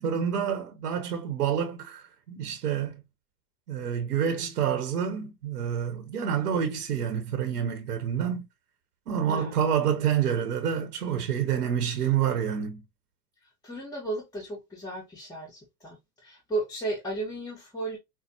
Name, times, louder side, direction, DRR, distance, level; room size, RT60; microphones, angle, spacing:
voice 1, 0.0-3.0 3.7-8.5 9.1-12.8, right 8 dB, 75° right, 0.9 m, -28 dB
voice 2, 9.3-9.6 13.4-18.0, right 2 dB, 10° left, 1.1 m, -35 dB
5.3 x 2.1 x 2.8 m
hypercardioid pair, 100°, 47 cm